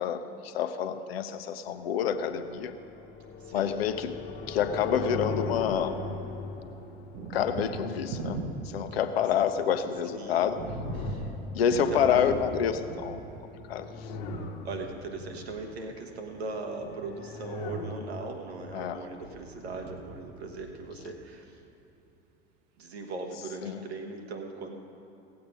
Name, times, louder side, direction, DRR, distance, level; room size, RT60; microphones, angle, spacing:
voice 1, 0.0-2.8 3.5-4.2 4.5-6.0 7.3-8.4 8.6-10.6 11.5-13.2 13.7-14.1 18.7-19.0 23.6-23.8, left 8 dB, 70° left, 9 dB, 0.8 m, -28 dB
sound 1, 2.4-8.1 10.1-11.9 13.5-15.0 16.9-18.2, left 4 dB, 55° left, 1.2 m, -38 dB
voice 2, 3.4-3.7 8.9-9.0 10.1-10.5 11.0-11.3 11.7-12.3 14.6-21.6 22.8-24.8, right 3 dB, 75° right, 3 dB, 1.4 m, -39 dB
Thunder, 4.9-6.1 6.4-21.6, right 3 dB, 50° right, 1.1 m, -42 dB
17.0 x 7.8 x 5.3 m, 2.9 s
figure-of-eight pair, 70°, 32 cm